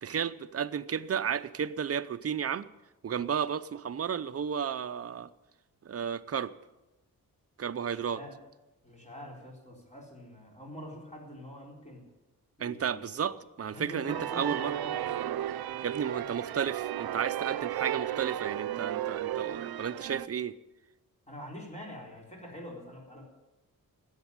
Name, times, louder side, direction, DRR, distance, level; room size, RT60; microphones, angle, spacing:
voice 1, 0.0-2.7 3.0-5.3 5.8-6.5 7.6-8.2 12.6-14.7 15.8-20.5, right 8 dB, 40° right, 11 dB, 0.7 m, -33 dB
voice 2, 7.7-8.4 8.8-12.1 12.6-13.1 13.7-15.1 21.3-23.2, equal, 20° left, -1 dB, 4.2 m, -45 dB
sound 1, 14.1-20.3, right 11 dB, 85° right, 0.6 m, -34 dB
13.5 x 9.0 x 9.7 m, 1.0 s
wide cardioid pair, 105°, 36 cm